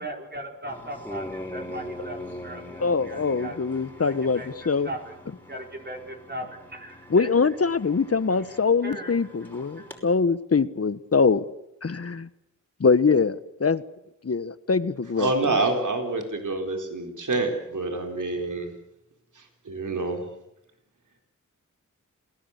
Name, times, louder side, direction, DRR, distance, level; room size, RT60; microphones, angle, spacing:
voice 1, 0.0-3.6 4.0-4.5 4.8-5.1 5.5-7.3 8.8-9.1 9.4-10.1, right 1 dB, 35° right, 2 dB, 4.6 m, -38 dB
sound 1, 0.7-10.0, left 1 dB, 5° left, 5.5 m, -42 dB
voice 2, 2.8-4.9 7.1-11.4 11.8-12.3 12.8-13.8 14.2-15.6, left 5 dB, 50° left, 15 dB, 1.2 m, -23 dB
voice 3, 15.2-18.7 19.7-20.2, right 3 dB, 70° right, 4 dB, 4.2 m, -27 dB
28.0 x 17.5 x 8.2 m, 0.85 s
cardioid pair, 55°, 31 cm